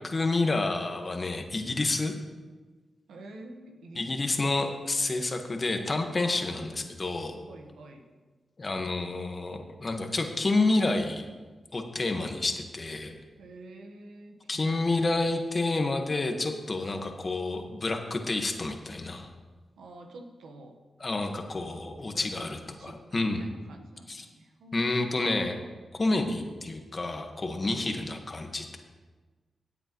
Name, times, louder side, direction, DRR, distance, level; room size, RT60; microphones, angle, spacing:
voice 1, 0.0-2.1 4.0-7.4 8.6-11.3 11.7-13.1 14.5-19.3 21.0-23.5 24.1-24.2 24.7-25.6 26.0-28.8, left 2 dB, 45° left, 5 dB, 1.5 m, -29 dB
voice 2, 3.1-4.6 6.4-6.9 7.5-8.1 13.4-14.8 19.8-20.8 22.0-25.1 27.6-28.1, right 1 dB, 85° right, 3 dB, 1.3 m, -48 dB
17.0 x 7.8 x 3.1 m, 1.3 s
supercardioid pair, 45°, 0 cm